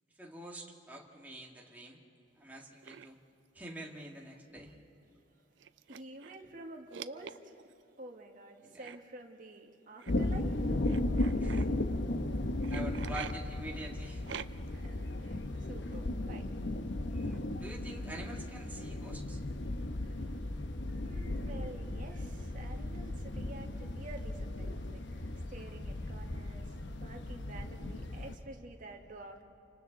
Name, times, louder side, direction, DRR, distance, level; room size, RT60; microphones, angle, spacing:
voice 1, 0.2-2.0 2.4-3.2 3.6-4.7 8.6-8.9 11.4-11.7 12.7-14.2 17.1-19.4, right 1 dB, 10° right, -1 dB, 1.8 m, -46 dB
sound 1, 2.8-3.1 4.2-4.4 4.7-4.8 5.6-6.5 6.9-7.7 8.8-9.0 10.0-10.1 10.8-11.6 12.6-13.3 14.3-14.8, right 8 dB, 70° right, 0.5 m, -45 dB
voice 2, 5.8-11.7 14.7-16.6 20.0-20.5 21.0-29.4, right 2 dB, 45° right, 2 dB, 1.7 m, -50 dB
sound 2, 10.1-28.4, left 1 dB, 65° left, 1.0 m, -36 dB
29.5 x 25.5 x 4.0 m, 2.9 s
head